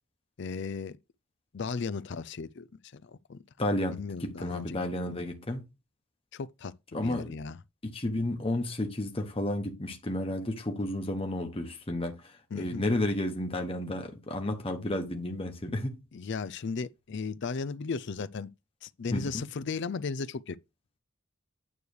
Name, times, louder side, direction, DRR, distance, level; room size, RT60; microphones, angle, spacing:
voice 1, 0.4-1.0 1.5-2.7 2.9-3.4 3.9-4.8 5.1-5.3 6.3-7.6 12.5-12.8 16.1-18.5 18.8-20.6, left 4 dB, 50° left, 0.4 m, -36 dB
voice 2, 3.6-5.6 6.9-7.3 7.8-16.0 19.1-19.4, left 1 dB, 25° left, 1.1 m, -32 dB
9.3 x 3.2 x 6.5 m
head